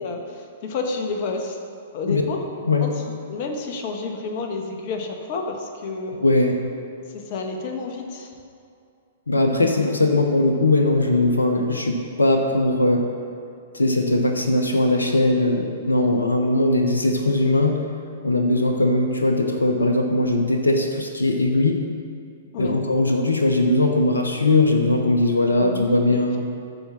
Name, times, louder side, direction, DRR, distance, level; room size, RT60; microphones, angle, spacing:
voice 1, 0.0-1.6 1.9-2.4 2.8-3.0 3.3-6.2 7.1-8.3 15.9-16.2 22.5-22.8 25.6-26.4, left 4 dB, 45° left, 3 dB, 1.5 m, -30 dB
voice 2, 6.2-6.6 9.3-13.1 13.7-17.8 18.2-21.8 22.6-26.4, left 2 dB, 85° left, 3 dB, 1.0 m, -20 dB
13.0 x 4.9 x 6.4 m, 2.4 s
figure-of-eight pair, 115°, 0 cm